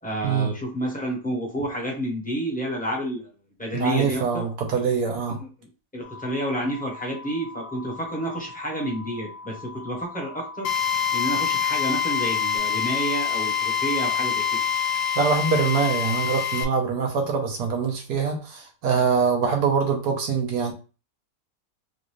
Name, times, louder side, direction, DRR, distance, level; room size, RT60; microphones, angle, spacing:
voice 1, 0.0-3.3 3.6-4.5 5.3-14.6, right 1 dB, 5° left, -2 dB, 0.9 m, -30 dB
voice 2, 3.7-5.4 15.2-20.7, right 5 dB, 80° right, 3 dB, 1.5 m, -24 dB
sound 1, 6.0-12.6, left 3 dB, 55° left, 0.9 m, -43 dB
Drill, 10.6-16.6, left 8 dB, 80° left, 1.1 m, -25 dB
3.9 x 2.5 x 3.1 m, 0.34 s
omnidirectional pair, 1.7 m